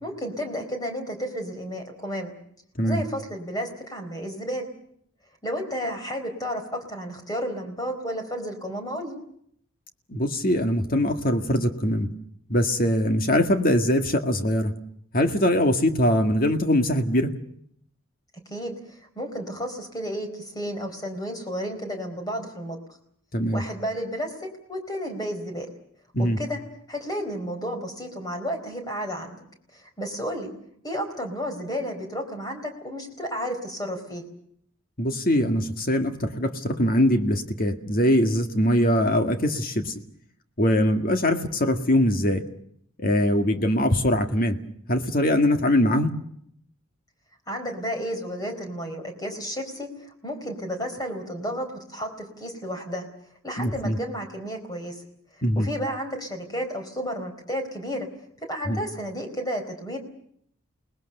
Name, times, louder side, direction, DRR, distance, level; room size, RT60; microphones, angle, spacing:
voice 1, 0.0-2.3 2.8-4.7 5.4-9.2 18.5-22.8 23.5-25.7 26.2-26.6 26.9-29.4 29.7-30.5 30.8-34.2 47.5-53.0 53.4-55.0 55.6-58.1 58.4-60.0, equal, 20° left, 4 dB, 4.3 m, -32 dB
voice 2, 10.1-12.1 12.5-14.7 15.1-17.3 23.3-23.6 26.1-26.4 35.0-39.9 40.6-42.5 43.0-44.6 44.9-46.1 53.6-54.0 55.4-55.7 58.7-58.8, left 1 dB, 40° left, 6 dB, 1.9 m, -22 dB
29.0 x 20.0 x 6.7 m, 0.68 s
head